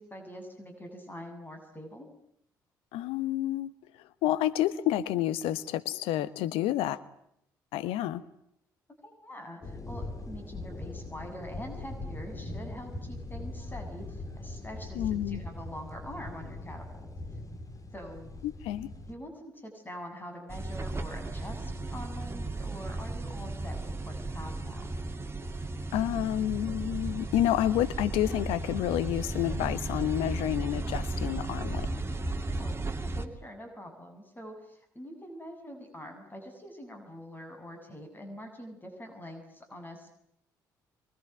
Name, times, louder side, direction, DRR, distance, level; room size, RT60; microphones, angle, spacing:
voice 1, 0.0-2.1 9.0-17.1 17.9-18.3 19.1-24.9 32.6-40.1, equal, 20° left, 5 dB, 7.9 m, -44 dB
voice 2, 2.9-3.7 4.2-7.0 7.7-8.2 15.0-15.4 18.4-18.9 25.9-31.9, left 13 dB, 70° left, 15 dB, 1.1 m, -29 dB
sound 1, 9.6-19.1, left 2 dB, 35° left, 4.4 m, -41 dB
sound 2, 20.5-33.3, right 2 dB, 25° right, 2.8 m, -35 dB
24.5 x 24.0 x 9.4 m, 0.74 s
figure-of-eight pair, 45°, 10 cm